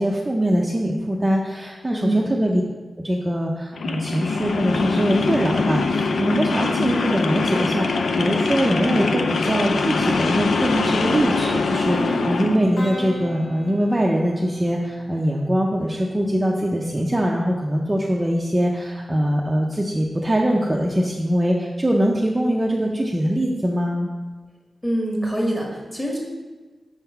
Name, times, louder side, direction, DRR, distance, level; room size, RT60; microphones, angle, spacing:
voice 1, 0.0-2.6 3.0-24.1, equal, 15° right, -2 dB, 0.6 m, -22 dB
voice 2, 1.9-2.4 24.8-26.2, right 1 dB, 10° left, -3 dB, 1.8 m, -25 dB
sound 1, 3.7-12.6, left 4 dB, 80° left, 0.5 m, -23 dB
sound 2, 11.9-15.8, equal, 60° left, 1.6 m, -33 dB
7.1 x 3.7 x 5.6 m, 1.3 s
wide cardioid pair, 130°, 0 cm